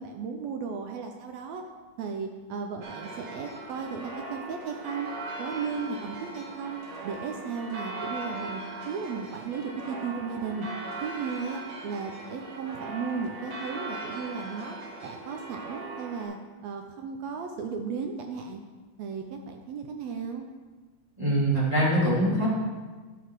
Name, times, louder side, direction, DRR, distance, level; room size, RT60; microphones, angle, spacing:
voice 1, 0.0-1.6 2.0-5.1 5.4-6.8 7.0-10.7 11.0-14.8 15.0-16.4 16.6-18.6 19.0-20.5, right 5 dB, 75° right, 4 dB, 1.6 m, -35 dB
sound 1, 2.8-16.2, right 2 dB, 60° right, 2.4 m, -39 dB
voice 2, 21.2-22.5, equal, 10° right, -8 dB, 2.4 m, -23 dB
11.5 x 5.9 x 4.7 m, 1.3 s
omnidirectional pair, 3.7 m